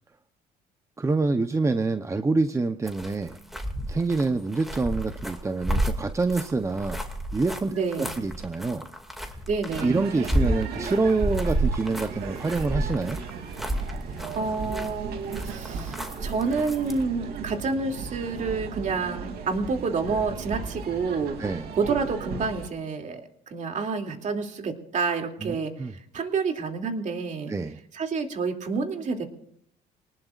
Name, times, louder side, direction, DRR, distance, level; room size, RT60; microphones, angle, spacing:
voice 1, 1.0-3.4 3.9-7.0 7.3-8.9 9.2-9.3 9.8-13.2 21.4-21.7 25.4-25.9 27.5-27.8, right 3 dB, 15° right, 8 dB, 0.8 m, -26 dB
sound 1, 2.8-17.0, right 1 dB, ahead, 2.3 m, -31 dB
voice 2, 7.7-8.1 9.5-10.0 14.3-21.3 21.8-25.7 26.1-27.5 27.9-29.2, right 4 dB, 45° right, 4 dB, 2.8 m, -28 dB
sound 2, 9.7-22.7, right 5 dB, 70° right, 2.9 m, -36 dB
24.5 x 19.5 x 2.5 m, 0.72 s
cardioid pair, 110°, 17 cm